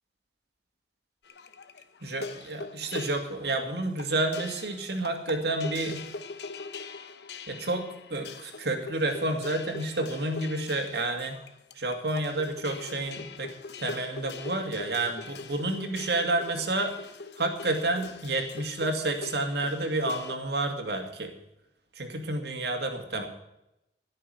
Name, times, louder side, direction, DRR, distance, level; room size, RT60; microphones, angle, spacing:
sound 1, 1.2-20.4, left 3 dB, 75° left, 0.9 m, -42 dB
voice 1, 2.0-6.1 7.5-11.4 11.7-13.5 13.8-16.9 17.4-21.3 22.0-23.3, right 2 dB, 70° right, 3 dB, 2.3 m, -30 dB
15.5 x 6.6 x 9.2 m, 0.86 s
head